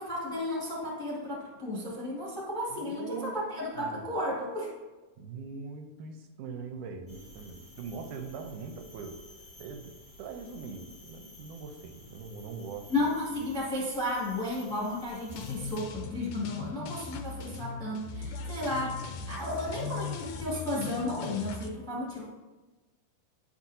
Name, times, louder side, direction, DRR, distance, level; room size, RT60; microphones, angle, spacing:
voice 1, 0.0-4.7 12.9-22.3, left 1 dB, ahead, -4 dB, 1.1 m, -33 dB
voice 2, 2.7-3.4 3.8-4.1 5.2-9.2 9.6-13.1, right 5 dB, 85° right, 5 dB, 2.1 m, -42 dB
sound 1, 7.1-15.8, left 1 dB, 30° left, 0.6 m, -52 dB
sound 2, 15.3-21.7, left 5 dB, 80° left, 1.7 m, -39 dB
10.0 x 5.9 x 2.7 m, 1.2 s
omnidirectional pair, 3.6 m